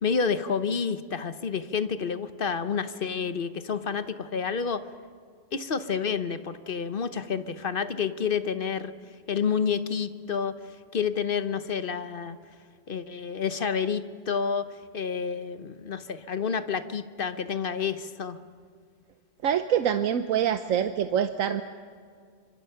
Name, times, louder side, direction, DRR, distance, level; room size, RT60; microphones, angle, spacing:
voice 1, 0.0-4.8 5.5-8.9 9.3-10.5 10.9-12.4 12.9-18.4, left 6 dB, 45° left, 11 dB, 1.0 m, -29 dB
voice 2, 19.4-21.6, right 9 dB, 85° right, 9 dB, 1.2 m, -25 dB
27.0 x 25.0 x 5.7 m, 2.1 s
omnidirectional pair, 1.4 m